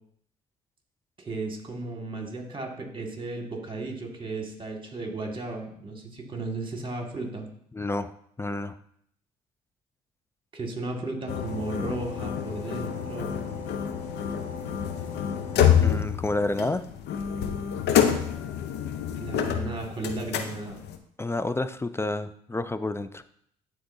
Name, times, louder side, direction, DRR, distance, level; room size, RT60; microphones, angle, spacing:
voice 1, 1.2-7.5 10.5-13.4 19.2-20.8, right 3 dB, 30° right, 2 dB, 1.9 m, -35 dB
voice 2, 7.7-8.1 8.4-8.7 15.8-16.8 21.2-23.2, left 2 dB, 15° left, 12 dB, 0.4 m, -29 dB
sound 1, 11.3-21.0, left 8 dB, 70° left, 0.7 m, -27 dB
11.0 x 3.7 x 2.7 m, 0.66 s
hypercardioid pair, 55°, 18 cm